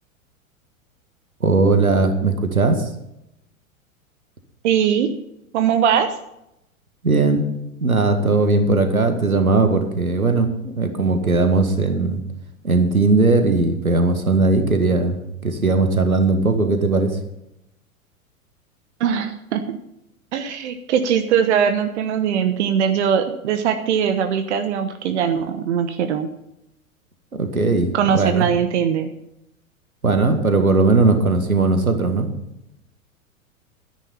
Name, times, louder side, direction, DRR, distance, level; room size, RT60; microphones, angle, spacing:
voice 1, 1.4-2.9 7.0-7.4 7.8-12.2 12.6-17.1 27.3-28.5 30.0-32.3, right 3 dB, 85° right, 7 dB, 1.8 m, -18 dB
voice 2, 4.6-5.1 5.5-6.2 19.0-19.6 20.3-26.3 27.9-29.1, right 8 dB, 55° right, 8 dB, 1.1 m, -20 dB
12.5 x 10.5 x 5.6 m, 0.83 s
figure-of-eight pair, 95°, 42 cm